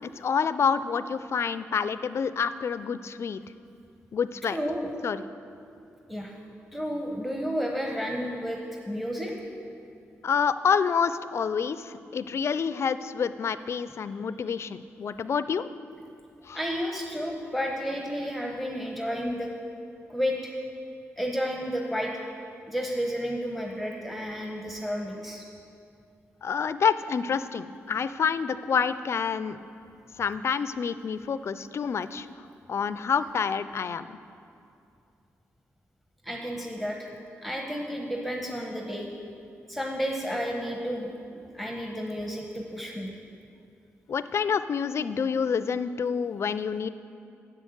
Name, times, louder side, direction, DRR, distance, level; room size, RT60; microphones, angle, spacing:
voice 1, 0.0-3.4 4.1-4.6 5.0-5.2 10.2-15.7 16.5-16.6 26.4-29.6 30.2-32.3 32.7-34.2 44.1-46.9, left 6 dB, 55° left, 14 dB, 0.4 m, -28 dB
voice 2, 4.4-4.9 6.1-6.3 6.7-9.3 16.5-19.5 20.1-20.6 21.2-22.3 22.7-25.4 36.2-37.1 37.4-39.1 39.7-43.1, equal, ahead, 1 dB, 1.0 m, -31 dB
7.4 x 6.4 x 7.9 m, 2.6 s
cardioid pair, 60°, 6 cm